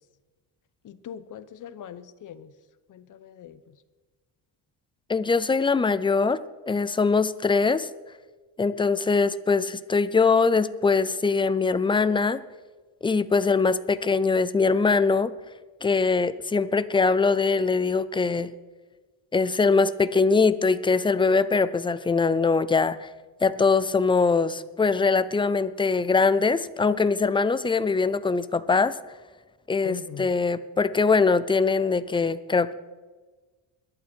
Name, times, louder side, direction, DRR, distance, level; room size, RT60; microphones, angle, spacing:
voice 1, 0.8-2.5 2.9-3.7 29.8-30.3, left 8 dB, 45° left, 13 dB, 1.0 m, -41 dB
voice 2, 5.1-7.9 8.6-12.4 13.0-15.3 15.8-18.5 19.3-23.1 23.4-29.0 29.7-32.7, left 4 dB, 15° left, 15 dB, 0.4 m, -22 dB
21.5 x 11.5 x 4.5 m, 1.3 s
cardioid pair, 150°, 43 cm